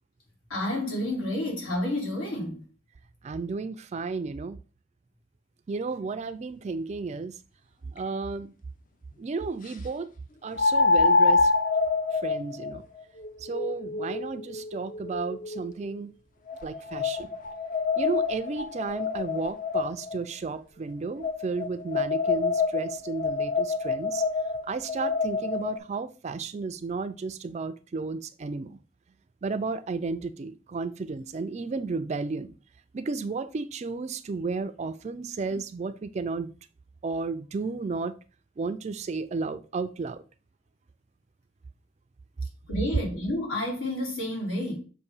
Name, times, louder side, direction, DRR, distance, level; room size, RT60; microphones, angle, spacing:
voice 1, 0.5-2.7 42.7-44.8, left 1 dB, 70° left, 2.5 m, -30 dB
voice 2, 3.2-4.6 5.7-7.3 7.9-8.5 9.2-10.1 10.4-11.5 12.1-12.8 13.4-16.1 16.6-17.3 18.0-24.2 24.7-28.8 29.4-32.5 32.9-36.5 37.0-38.2 38.6-40.2, right 4 dB, 35° right, 0.3 m, -33 dB
sound 1, 8.0-8.1 10.6-15.7 16.5-20.2 21.2-25.8, left 4 dB, 40° left, 0.5 m, -27 dB
6.5 x 2.6 x 5.4 m
head